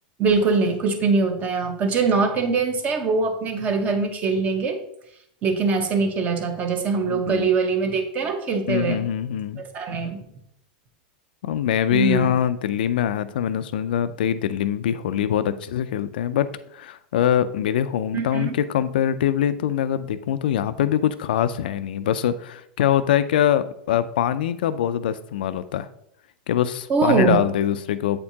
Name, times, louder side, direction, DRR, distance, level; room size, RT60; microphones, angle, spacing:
voice 1, 0.2-4.8 5.4-9.0 9.7-10.2 11.9-12.3 18.1-18.6 26.9-27.4, right 4 dB, 30° right, 6 dB, 1.0 m, -22 dB
voice 2, 7.1-7.5 8.7-9.6 11.4-25.9 26.5-28.2, left 10 dB, 80° left, 13 dB, 0.4 m, -23 dB
8.2 x 4.4 x 2.8 m, 0.73 s
supercardioid pair, 135°, 5 cm